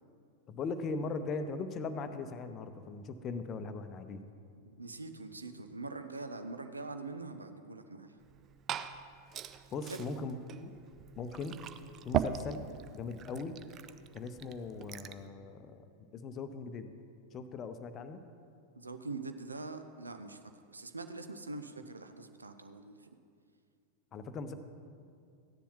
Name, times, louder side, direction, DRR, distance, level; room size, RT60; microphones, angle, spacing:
voice 1, 0.5-4.2 9.7-10.7 11.2-11.6 12.0-12.7 12.9-13.6 14.1-15.9 16.1-16.9 17.3-18.2 24.1-24.5, left 4 dB, 30° left, 9 dB, 0.7 m, -39 dB
voice 2, 4.6-8.1 9.9-10.0 18.8-20.4 20.7-23.0, right 3 dB, 80° right, 8 dB, 0.6 m, -43 dB
Glass / Fill (with liquid), 8.2-15.3, right 9 dB, 30° right, 0.4 m, -40 dB
15.5 x 10.0 x 3.1 m, 2.3 s
figure-of-eight pair, 90°, 0 cm